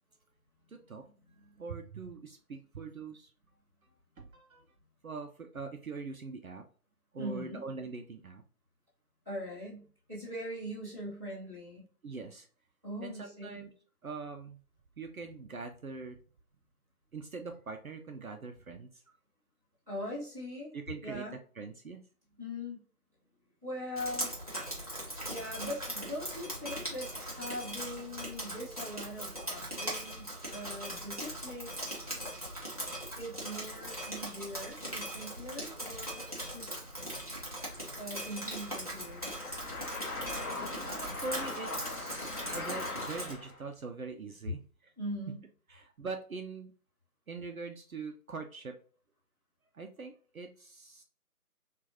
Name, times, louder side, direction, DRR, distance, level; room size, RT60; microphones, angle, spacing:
voice 1, 0.7-1.0 1.6-3.3 4.2-4.7 5.0-6.7 7.1-8.4 12.0-12.5 13.0-13.7 14.0-14.6 15.0-16.2 17.1-19.0 20.7-21.2 21.6-22.0 24.7-25.3 40.8-44.9 45.7-46.7 47.3-48.7 49.7-51.0, right 4 dB, 65° right, 4 dB, 0.5 m, -43 dB
voice 2, 7.2-7.6 9.2-11.8 12.8-13.6 19.9-20.7 21.0-21.3 22.4-22.8 23.6-24.3 25.3-31.7 33.1-36.7 38.0-39.3 45.0-45.4, equal, 5° right, -19 dB, 1.5 m, -41 dB
Drip, 24.0-43.3, equal, 25° right, 0.8 m, -40 dB
sound 1, 36.5-43.6, left 3 dB, 70° left, 0.8 m, -41 dB
3.7 x 2.4 x 2.8 m, 0.43 s
figure-of-eight pair, 160°, 45 cm